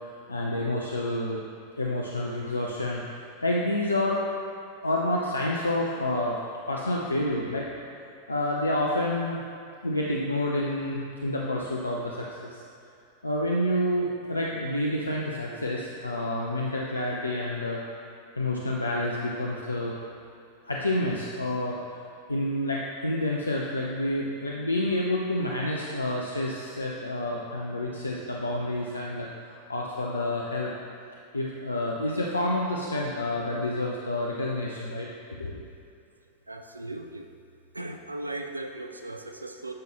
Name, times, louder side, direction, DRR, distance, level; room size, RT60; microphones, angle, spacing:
voice 1, 0.3-1.4 1.8-4.2 4.8-6.4 6.7-7.7 8.3-9.4 9.8-12.6 13.2-17.8 18.3-19.9 20.6-21.8 22.3-30.7 31.3-35.1 35.4-35.6, left 1 dB, 80° left, -3 dB, 0.4 m, -29 dB
voice 2, 36.5-37.3 37.7-39.7, right 2 dB, 85° right, 5 dB, 0.3 m, -37 dB
7.5 x 5.2 x 2.9 m, 2.5 s
figure-of-eight pair, 90°, 0 cm